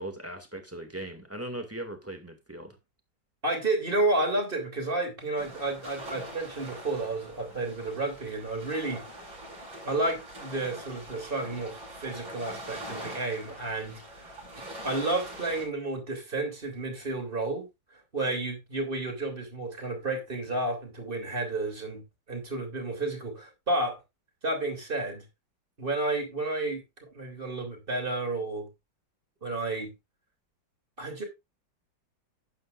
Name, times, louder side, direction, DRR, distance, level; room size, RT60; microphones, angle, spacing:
voice 1, 0.0-2.8, right 1 dB, 10° right, 2.0 m, -39 dB
voice 2, 3.4-9.0 9.8-14.3 14.8-17.7 18.1-24.0 24.4-25.2 25.8-28.7 29.4-29.9 31.0-31.2, right 2 dB, 25° right, 3.2 m, -31 dB
sound 1, 5.4-15.6, right 1 dB, 85° right, 6.0 m, -43 dB
12.5 x 9.3 x 2.5 m
omnidirectional pair, 2.0 m